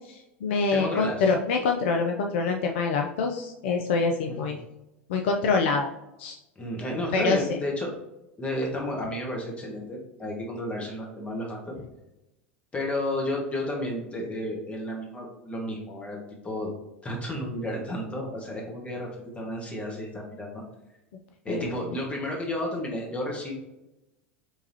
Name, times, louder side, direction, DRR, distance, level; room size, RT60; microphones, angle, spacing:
voice 1, 0.0-4.6 5.1-5.9 6.2-6.4 7.1-7.6 21.5-21.8, left 4 dB, 65° left, 3 dB, 0.5 m, -25 dB
voice 2, 0.7-1.3 4.2-4.5 6.5-7.9 8.4-11.7 12.7-16.2 16.4-16.7 17.0-19.1 19.3-20.6 21.4-23.5, left 1 dB, 20° left, -1 dB, 1.5 m, -32 dB
4.6 x 3.4 x 2.8 m, 0.93 s
hypercardioid pair, 85°, 7 cm